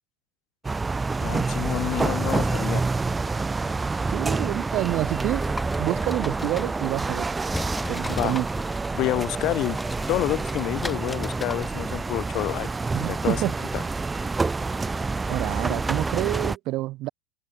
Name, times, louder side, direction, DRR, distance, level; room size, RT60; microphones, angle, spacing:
sound 1, 0.6-16.6, right 3 dB, 15° right, 0.4 m, -28 dB
voice 1, 1.2-2.9 8.2-8.4 8.9-9.8 10.1-12.7 13.1-13.4 13.7-13.8 15.7-15.8, left 16 dB, 45° left, 1.9 m, -28 dB
voice 2, 4.1-5.5 5.8-7.3 7.9-8.5 12.9-13.5 15.3-17.1, right 18 dB, 45° right, 1.0 m, -28 dB
sound 2, 5.3-7.2 7.5-12.0, left 1 dB, 5° left, 1.3 m, -37 dB
figure-of-eight pair, 80°, 0 cm